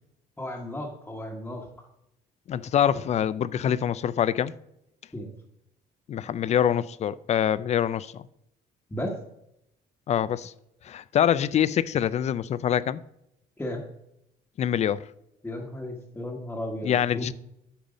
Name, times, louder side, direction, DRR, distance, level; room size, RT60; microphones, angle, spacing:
voice 1, 0.4-1.7 5.1-5.3 8.9-9.1 13.6-13.8 15.4-17.3, left 1 dB, 10° left, 1.3 m, -34 dB
voice 2, 2.5-4.5 6.1-8.2 10.1-10.5 10.8-13.0 14.6-15.1 16.8-17.3, left 9 dB, 40° left, 0.4 m, -25 dB
8.9 x 5.4 x 5.1 m
cardioid pair, 110°, 17 cm